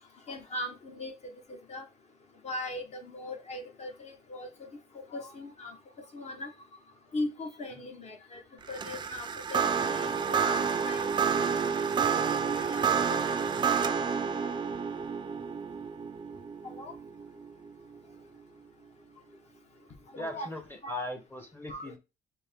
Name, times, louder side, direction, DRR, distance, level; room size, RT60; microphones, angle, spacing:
voice 1, 0.3-1.1 1.5-1.8 2.4-4.5 5.1-5.8 6.1-6.5 7.1-8.4 8.7-11.1 11.6-11.7 12.1-13.4 13.7-13.8 16.6-16.9 20.1-20.5 20.8-20.9 21.7-22.0, left 1 dB, 40° left, 5 dB, 1.0 m, -39 dB
sound 1, 8.6-18.0, right 6 dB, 25° right, 0.4 m, -29 dB
voice 2, 20.2-22.0, left 1 dB, 10° left, 5 dB, 0.8 m, -39 dB
4.4 x 2.2 x 3.5 m, 0.26 s
cardioid pair, 110°, 17 cm